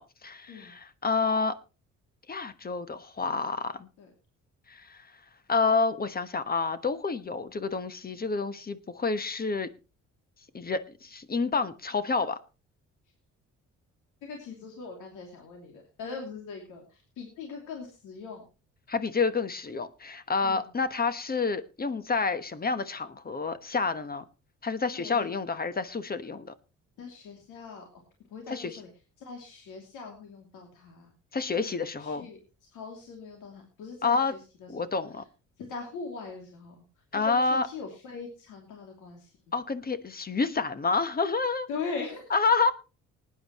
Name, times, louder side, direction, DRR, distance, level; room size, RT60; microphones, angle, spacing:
voice 1, 0.0-1.6 2.3-3.9 4.7-5.1 5.5-9.7 10.5-12.4 18.9-24.2 24.6-26.5 28.5-28.7 31.3-32.3 34.0-34.3 34.7-35.2 37.1-37.7 39.5-41.7 42.3-42.7, left 4 dB, 30° left, 12 dB, 1.2 m, -29 dB
voice 2, 14.2-18.4 20.4-20.7 24.9-25.3 27.0-27.9 28.3-28.9 29.2-31.1 31.5-34.9 35.6-39.5 41.7-42.4, left 4 dB, 90° left, 1 dB, 2.8 m, -41 dB
19.5 x 9.6 x 3.0 m, 0.32 s
cardioid pair, 90°, 30 cm